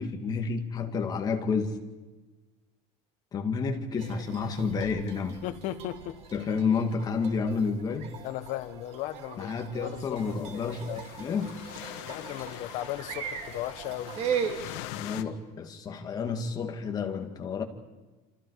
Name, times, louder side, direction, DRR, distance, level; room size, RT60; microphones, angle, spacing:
voice 1, 0.0-1.8 3.3-5.4 6.3-8.1 9.4-10.9 11.2-11.6 15.0-17.6, left 5 dB, 25° left, 4 dB, 2.2 m, -30 dB
sound 1, 4.0-14.8, right 7 dB, 45° right, 2.6 m, -39 dB
voice 2, 5.4-6.2 8.2-9.5 9.8-10.2 10.5-11.1 12.1-14.2, left 13 dB, 55° left, 9 dB, 1.5 m, -36 dB
sound 2, 10.2-15.2, left 13 dB, 90° left, 1.5 m, -43 dB
29.0 x 27.0 x 4.9 m, 1.2 s
cardioid pair, 165°, 15 cm